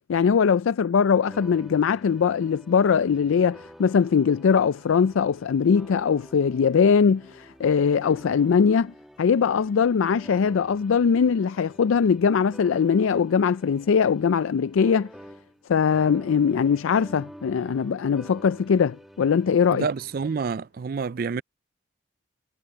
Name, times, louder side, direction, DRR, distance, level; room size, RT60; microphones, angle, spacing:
voice 1, 0.1-15.1 15.7-19.9, left 6 dB, 90° left, 0.4 m, -21 dB
sound 1, 1.2-15.7 15.9-20.4, equal, ahead, 1.5 m, -48 dB
voice 2, 19.7-21.4, right 5 dB, 45° right, 0.4 m, -28 dB
head